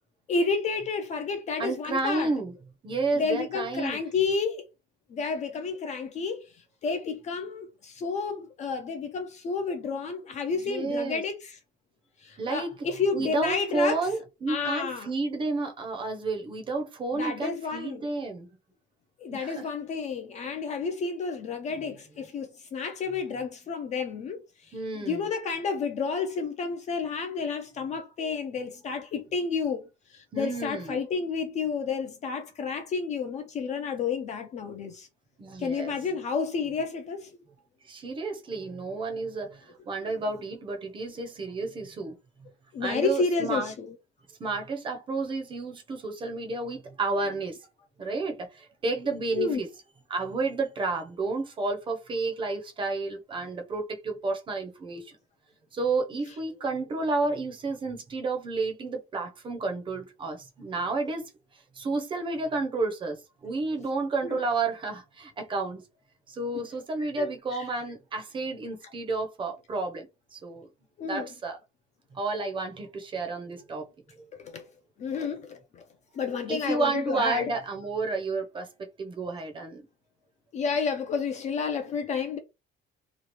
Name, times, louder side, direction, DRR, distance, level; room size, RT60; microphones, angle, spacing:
voice 1, 0.3-2.3 3.1-4.6 5.1-11.6 12.2-14.1 14.5-15.1 17.1-18.1 19.2-35.1 35.6-37.3 42.7-43.9 49.4-49.6 64.2-64.4 67.0-67.7 71.0-71.3 74.3-74.6 75.0-75.8 76.1-77.5 80.5-82.4, left 5 dB, 35° left, 0.4 m, -31 dB
voice 2, 1.6-2.5 2.8-4.0 10.5-11.2 12.4-12.7 13.1-18.5 19.3-19.6 24.7-25.3 30.3-31.0 35.4-35.9 37.8-42.1 42.4-42.5 42.8-43.7 44.4-47.6 48.0-49.7 50.1-55.2 55.7-61.2 61.7-65.8 66.3-70.1 70.3-70.7 71.0-71.6 72.1-73.9 76.5-79.8, right 3 dB, 25° right, 0.6 m, -31 dB
3.0 x 2.4 x 2.9 m
cardioid pair, 170°, 21 cm